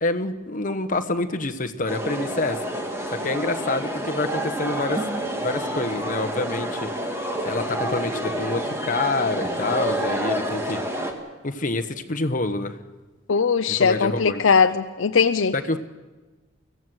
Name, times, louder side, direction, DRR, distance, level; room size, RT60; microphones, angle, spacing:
voice 1, 0.0-2.6 3.1-5.0 5.4-6.9 7.4-10.8 11.4-12.8 13.8-14.4 15.5-15.8, left 2 dB, 45° left, 1.2 m, -27 dB
sound 1, 1.9-11.1, equal, 15° right, 2.2 m, -28 dB
voice 2, 13.3-15.5, left 5 dB, 90° left, 0.6 m, -20 dB
24.5 x 15.5 x 7.9 m
head